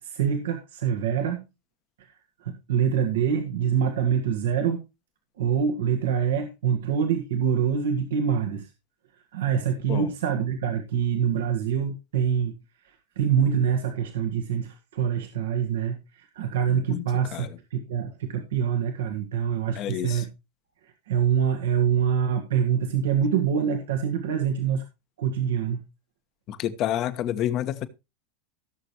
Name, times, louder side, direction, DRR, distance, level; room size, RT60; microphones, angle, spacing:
voice 1, 0.0-1.4 2.0-2.1 2.4-4.8 5.4-8.7 9.1-12.5 12.8-20.3 20.8-24.8 25.2-25.8, right 8 dB, 80° right, 1.6 m, -25 dB
voice 2, 19.7-20.2 26.5-27.9, left 11 dB, 45° left, 1.3 m, -29 dB
17.0 x 6.7 x 3.0 m
hypercardioid pair, 105°, 0 cm